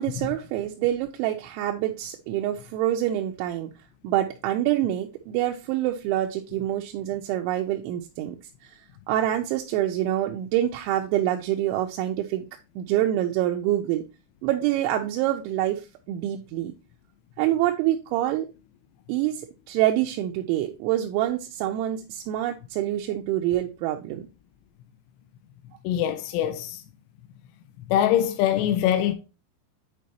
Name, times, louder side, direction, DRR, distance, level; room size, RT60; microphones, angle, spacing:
voice 1, 0.0-3.7 4.0-8.4 9.1-12.5 12.8-14.0 14.4-16.7 17.4-18.5 19.1-24.2, right 13 dB, 85° right, 2.9 m, -26 dB
voice 2, 25.8-26.8 27.9-29.1, left 11 dB, 85° left, 3.1 m, -23 dB
9.4 x 4.5 x 2.9 m
omnidirectional pair, 5.6 m